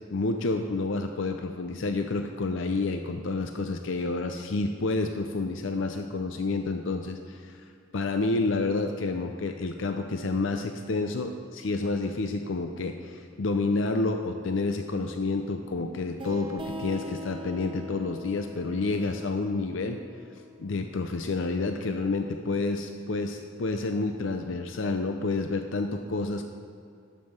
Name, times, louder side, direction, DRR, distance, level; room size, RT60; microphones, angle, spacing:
voice 1, 0.1-7.6 7.9-20.0 20.6-26.6, left 3 dB, 65° left, 5 dB, 0.5 m, -29 dB
sound 1, 16.2-21.6, left 1 dB, 25° right, 0.7 m, -42 dB
11.5 x 5.6 x 6.4 m, 2.5 s
head